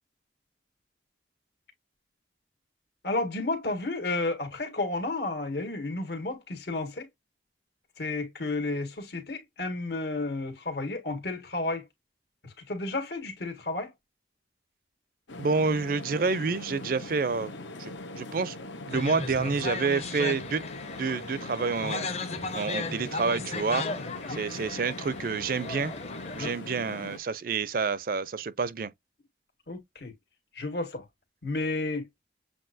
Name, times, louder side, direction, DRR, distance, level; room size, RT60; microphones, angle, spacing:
voice 1, 3.0-7.1 8.0-11.9 12.4-13.9 24.0-24.4 26.4-26.5 29.7-30.1 30.5-31.0 31.4-32.1, left 2 dB, 65° left, 1.8 m, -32 dB
sound 1, 15.3-27.2, left 2 dB, 85° left, 1.0 m, -41 dB
voice 2, 15.4-17.5 17.8-18.6 18.9-20.6 20.9-22.1 22.5-23.9 24.3-25.9 26.4-28.9, right 4 dB, 50° right, 0.4 m, -28 dB
sound 2, 18.9-26.5, left 3 dB, 35° left, 0.8 m, -36 dB
7.6 x 2.6 x 2.6 m
head